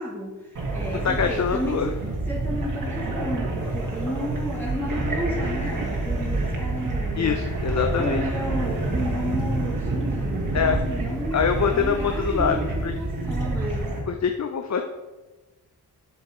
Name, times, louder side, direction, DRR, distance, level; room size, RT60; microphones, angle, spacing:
voice 1, 0.0-2.0 2.3-7.4 8.0-13.9, equal, 5° left, -4 dB, 2.6 m, -32 dB
sound 1, 0.6-14.0, right 2 dB, 55° right, 2.2 m, -28 dB
voice 2, 0.9-1.9 7.2-8.2 10.5-10.8 11.3-12.9 14.1-14.8, left 6 dB, 45° left, 5 dB, 0.7 m, -24 dB
8.0 x 6.2 x 4.6 m, 1.1 s
cardioid pair, 55°, 39 cm